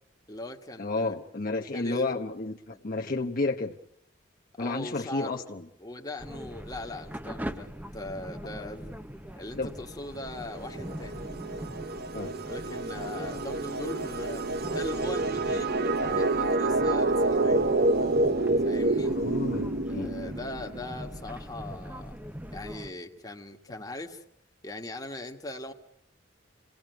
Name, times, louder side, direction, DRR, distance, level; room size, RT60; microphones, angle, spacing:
voice 1, 0.3-1.2 1.7-2.2 2.7-3.0 4.5-5.4 5.8-9.0 9.4-11.2 12.4-17.9 18.6-19.1 19.8-22.2 22.5-24.2 24.6-25.7, left 2 dB, 20° left, 1.6 m, -40 dB
voice 2, 0.8-3.8 4.6-5.7 8.4-8.7 9.6-9.7 12.1-12.3 17.3-17.4 19.1-20.1, left 3 dB, 50° left, 1.0 m, -32 dB
sound 1, 6.2-22.9, equal, 10° right, 0.9 m, -42 dB
sound 2, 10.3-20.8, right 2 dB, 55° right, 0.9 m, -28 dB
27.0 x 17.5 x 9.2 m
head